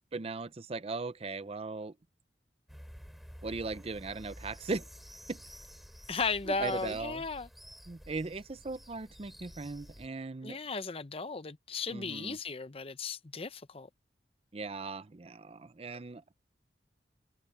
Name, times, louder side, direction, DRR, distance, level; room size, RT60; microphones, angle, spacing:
voice 1, 0.1-1.9 3.4-4.8 5.3-5.4 6.5-7.2 7.9-10.6 11.9-12.4 14.5-16.2, right 3 dB, 35° right, 0.6 m, -38 dB
sound 1, 2.7-10.1, equal, ahead, 4.2 m, -51 dB
voice 2, 6.1-7.5 10.4-13.9, left 4 dB, 35° left, 0.7 m, -35 dB
head